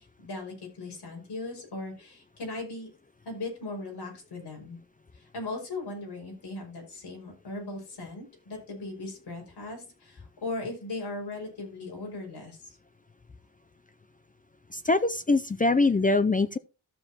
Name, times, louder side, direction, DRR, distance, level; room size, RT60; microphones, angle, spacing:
voice 1, 0.0-2.9 3.2-4.8 5.1-12.8, left 2 dB, 65° left, 5.8 m, -38 dB
voice 2, 14.7-16.6, left 3 dB, 20° left, 0.3 m, -23 dB
13.5 x 7.1 x 2.9 m
wide cardioid pair, 175°, 43 cm